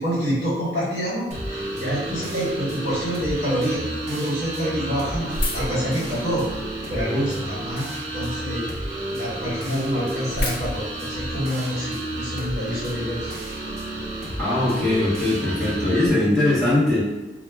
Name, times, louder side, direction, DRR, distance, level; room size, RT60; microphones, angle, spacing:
voice 1, 0.0-6.4 6.9-7.9 8.1-8.7 9.1-13.3, equal, 70° left, -6 dB, 1.2 m, -27 dB
sound 1, 1.3-16.1, right 1 dB, 40° right, 0.7 m, -31 dB
sound 2, 5.3-6.8 7.4-8.0 8.5-8.6 8.8-8.9 9.3-9.4 9.6-11.6, left 1 dB, 50° left, 0.6 m, -30 dB
voice 2, 14.4-17.0, left 1 dB, ahead, -10 dB, 0.8 m, -21 dB
2.2 x 2.1 x 3.3 m, 1.1 s
head